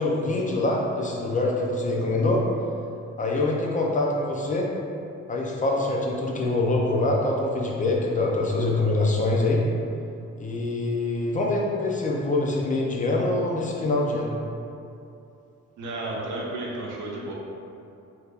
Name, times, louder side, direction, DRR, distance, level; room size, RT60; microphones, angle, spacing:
voice 1, 0.0-2.4 3.2-4.7 5.3-9.6 10.4-14.3, left 2 dB, 25° left, -2 dB, 0.5 m, -24 dB
voice 2, 15.8-17.3, right 2 dB, 85° right, -3 dB, 0.7 m, -32 dB
3.4 x 2.8 x 2.4 m, 2.6 s
cardioid pair, 90°, 30 cm